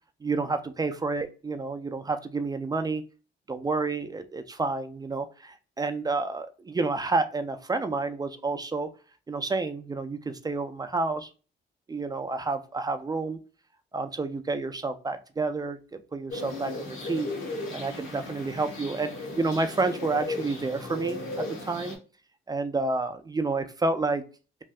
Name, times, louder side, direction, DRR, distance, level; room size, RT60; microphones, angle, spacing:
voice 1, 0.2-3.0 3.5-8.9 9.3-11.3 11.9-13.4 13.9-17.3 17.7-22.0 22.5-24.2, right 3 dB, 20° right, 8 dB, 0.4 m, -29 dB
sound 1, 16.3-21.9, left 2 dB, 85° left, 1.2 m, -36 dB
3.3 x 2.7 x 2.3 m, 0.35 s
cardioid pair, 90°, 20 cm